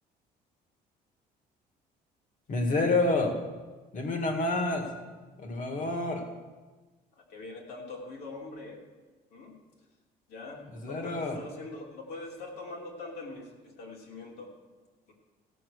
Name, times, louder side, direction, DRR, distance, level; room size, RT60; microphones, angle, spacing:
voice 1, 2.5-3.4 3.9-5.0 5.4-6.3 10.8-11.4, left 2 dB, 50° left, 4 dB, 2.0 m, -28 dB
voice 2, 7.1-8.8 9.3-9.6 10.3-14.5, left 3 dB, 70° left, -1 dB, 3.0 m, -43 dB
16.5 x 6.1 x 6.6 m, 1.3 s
cardioid pair, 110°, 17 cm